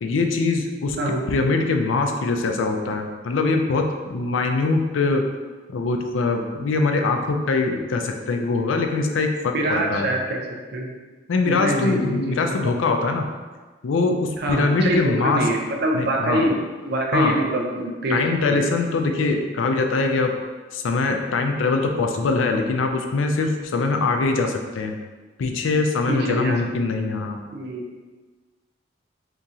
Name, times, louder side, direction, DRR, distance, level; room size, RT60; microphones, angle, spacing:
voice 1, 0.0-1.0 1.3-5.2 5.7-10.1 11.3-13.3 13.8-15.5 15.9-16.5 17.1-17.4 18.1-20.3 20.7-25.0 25.4-27.4, left 3 dB, 85° left, 4 dB, 0.4 m, -22 dB
voice 2, 9.5-10.4 10.7-10.9 11.5-12.6 14.4-16.6 16.9-18.2 18.4-18.9 26.1-26.6 27.5-27.8, right 1 dB, 60° right, 1 dB, 0.5 m, -24 dB
2.9 x 2.7 x 3.6 m, 1.3 s
head